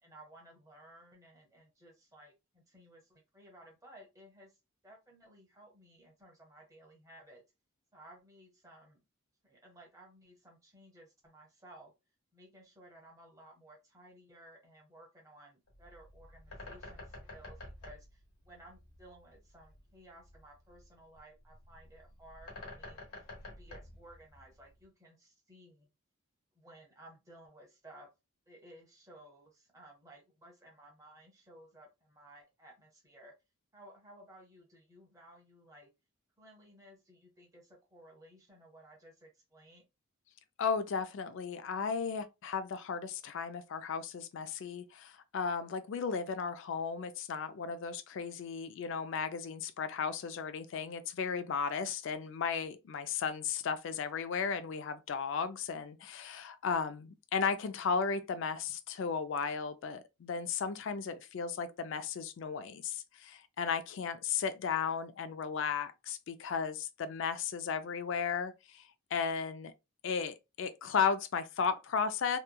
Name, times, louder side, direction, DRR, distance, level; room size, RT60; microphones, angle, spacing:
voice 1, 0.0-4.6 4.8-7.4 7.9-9.0 9.4-11.9 12.3-23.0 23.5-25.9 26.5-28.1 28.5-33.3 33.7-35.9 36.4-39.8, right 1 dB, 15° right, 0.9 m, -57 dB
Bird, 15.7-24.8, left 2 dB, 90° left, 1.3 m, -50 dB
voice 2, 40.6-68.8 69.1-69.7 70.0-72.4, left 6 dB, 60° left, 0.3 m, -35 dB
3.0 x 2.2 x 2.2 m
head